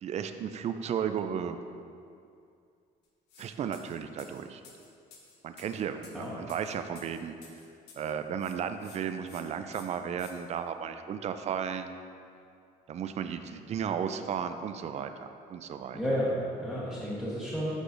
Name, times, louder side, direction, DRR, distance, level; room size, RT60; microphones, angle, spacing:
voice 1, 0.0-1.6 3.4-4.6 5.4-7.3 8.0-11.9 12.9-16.0, right 8 dB, 40° right, 8 dB, 0.4 m, -34 dB
sound 1, 3.3-3.5 3.7-8.1 8.4-9.0 9.3-9.4 9.7-10.3, left 5 dB, 80° left, 0.9 m, -54 dB
voice 2, 15.9-17.7, equal, 5° left, -9 dB, 1.1 m, -31 dB
8.3 x 4.8 x 2.6 m, 2.4 s
cardioid pair, 110°, 17 cm